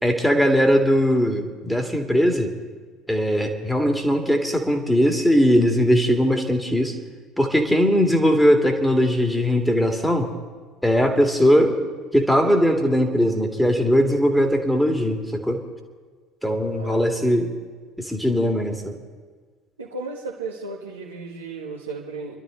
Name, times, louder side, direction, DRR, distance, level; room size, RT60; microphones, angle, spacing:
voice 1, 0.0-2.5 3.1-7.0 7.4-10.3 10.8-11.8 12.1-15.6 16.4-17.5 18.0-19.0, equal, 5° left, 4 dB, 2.3 m, -20 dB
voice 2, 19.8-22.3, right 3 dB, 85° right, -5 dB, 1.6 m, -34 dB
27.5 x 12.0 x 3.9 m, 1.5 s
figure-of-eight pair, 65°, 0 cm